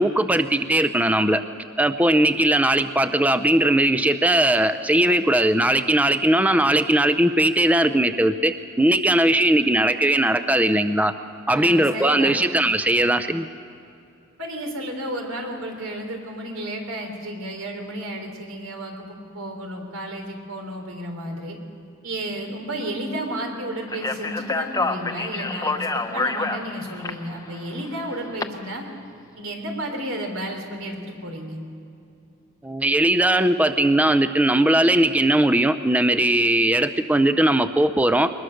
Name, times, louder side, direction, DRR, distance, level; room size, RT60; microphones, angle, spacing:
voice 1, 0.0-1.4 1.8-11.1 11.5-13.5 32.6-38.3, right 1 dB, 5° right, 10 dB, 0.5 m, -19 dB
voice 2, 11.5-12.4 14.4-21.6 22.0-28.9 29.4-31.6, right 1 dB, 90° right, 3 dB, 3.6 m, -32 dB
Speech, 23.9-28.4, left 3 dB, 15° left, 0.9 m, -28 dB
22.0 x 21.0 x 6.5 m, 2.6 s
head